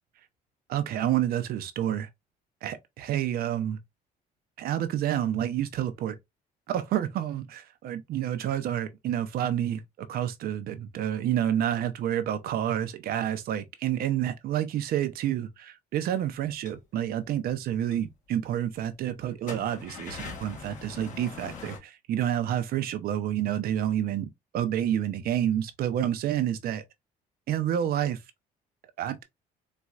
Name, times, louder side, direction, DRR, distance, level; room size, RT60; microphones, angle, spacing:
voice 1, 0.7-2.1 2.6-3.8 4.6-6.2 6.7-24.3 24.5-26.8 27.5-28.2 29.0-29.2, right 11 dB, 65° right, 0.6 m, -29 dB
sound 1, 16.5-16.8 17.5-17.6 17.9-18.0 18.4-18.5 19.3-21.8, left 5 dB, 45° left, 1.4 m, -42 dB
4.1 x 2.3 x 2.3 m
cardioid pair, 110°, 17 cm